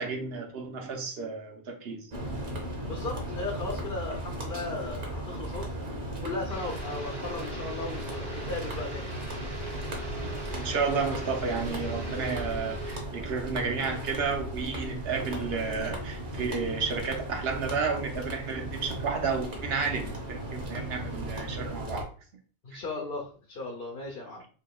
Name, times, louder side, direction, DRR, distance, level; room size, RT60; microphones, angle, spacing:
voice 1, 0.0-2.1 10.6-22.1 22.7-22.8, right 5 dB, 75° right, 3 dB, 1.0 m, -32 dB
sound 1, 2.1-22.0, right 1 dB, 55° right, 1.1 m, -37 dB
voice 2, 2.9-5.7 6.2-9.1 22.6-24.4, left 3 dB, 65° left, 0 dB, 0.9 m, -36 dB
sound 2, 6.5-13.0, right 1 dB, 35° right, 1.2 m, -40 dB
4.6 x 2.8 x 2.3 m, 0.41 s
omnidirectional pair, 1.0 m